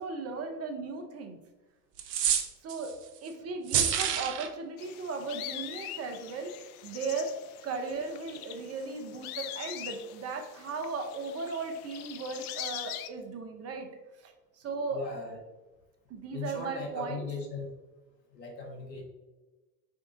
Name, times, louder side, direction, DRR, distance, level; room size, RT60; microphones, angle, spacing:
voice 1, 0.0-1.4 2.6-2.9 3.2-6.5 6.8-7.3 7.6-13.9 14.2-15.1 16.1-17.2, right 4 dB, 30° right, 4 dB, 0.7 m, -36 dB
sound 1, 2.0-2.9 3.7-4.5, right 8 dB, 70° right, 0.7 m, -27 dB
sound 2, 4.8-13.1, left 11 dB, 60° left, 0.5 m, -43 dB
voice 2, 14.9-15.4 16.3-17.7 18.3-19.0, left 3 dB, 85° left, 2 dB, 1.3 m, -38 dB
4.7 x 3.7 x 2.6 m, 1.1 s
hypercardioid pair, 85°, 49 cm